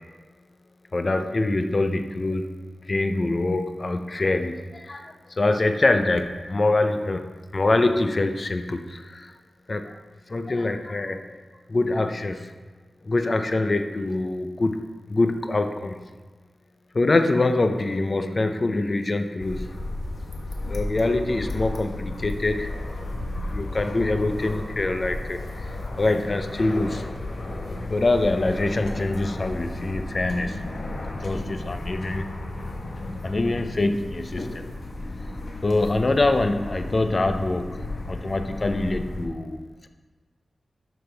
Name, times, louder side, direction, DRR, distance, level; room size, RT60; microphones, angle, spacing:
voice 1, 0.9-2.5 2.9-9.3 9.7-9.9 10.3-11.3 11.7-12.5 13.0-14.8 15.1-16.0 16.9-19.7 20.7-22.8 23.4-25.7 26.0-27.1 27.9-30.6 31.2-32.3 33.2-34.7 35.6-37.8 38.1-39.9, left 2 dB, 35° left, 7 dB, 0.6 m, -24 dB
sound 1, 19.4-39.3, left 2 dB, 60° left, 1.1 m, -33 dB
12.0 x 6.0 x 3.4 m, 1.3 s
wide cardioid pair, 140°, 0 cm